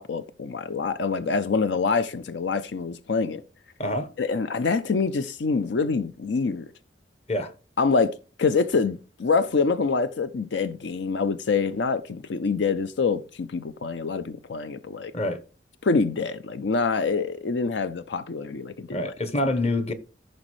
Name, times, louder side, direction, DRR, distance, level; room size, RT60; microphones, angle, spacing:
voice 1, 0.0-3.4 4.2-6.7 7.8-15.1 15.8-19.1, left 4 dB, 75° left, 0.5 m, -26 dB
voice 2, 18.9-19.9, left 1 dB, 35° left, 1.0 m, -26 dB
14.0 x 5.3 x 3.1 m
head